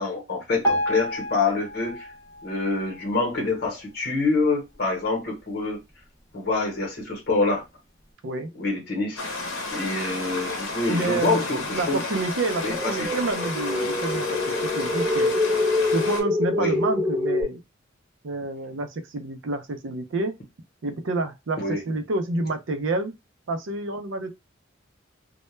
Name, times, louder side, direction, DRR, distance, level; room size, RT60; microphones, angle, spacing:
voice 1, 0.0-2.1 2.4-5.8 6.3-7.6 8.5-9.2 9.7-12.0 12.6-13.1 16.5-16.8 21.6-21.8, left 3 dB, 50° left, 0.9 m, -26 dB
Piano, 0.6-3.7 4.3-4.4 4.7-4.8 5.5-5.6 6.2-6.3, equal, 15° left, 0.6 m, -30 dB
Stream, 9.2-16.2, left 2 dB, 90° left, 0.7 m, -32 dB
voice 2, 10.9-14.4 14.8-15.3 15.9-17.6 18.2-20.3 20.8-23.1 23.5-24.3, right 2 dB, 70° right, 0.5 m, -28 dB
sound 1, 12.5-17.4, left 2 dB, 15° right, 0.9 m, -25 dB
2.2 x 2.1 x 3.0 m
head